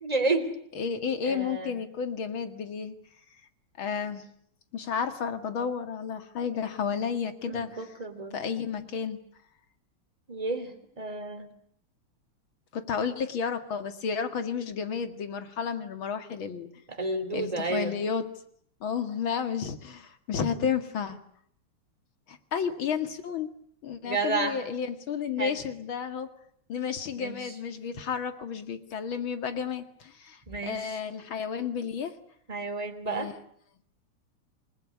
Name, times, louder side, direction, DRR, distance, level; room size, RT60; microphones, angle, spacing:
voice 1, 0.0-0.5 1.2-1.8 7.5-8.4 10.3-11.5 16.9-17.9 24.0-24.6 25.4-25.5 27.1-27.5 30.5-31.0 32.5-33.3, right 3 dB, 15° right, 6 dB, 3.0 m, -31 dB
voice 2, 0.8-2.9 3.8-4.2 4.7-7.8 8.3-9.2 12.7-16.7 17.3-18.2 18.8-21.2 22.3-23.5 23.8-26.3 26.7-32.1 33.1-33.3, left 6 dB, 65° left, 9 dB, 2.7 m, -32 dB
28.0 x 20.0 x 9.7 m, 0.68 s
omnidirectional pair, 2.4 m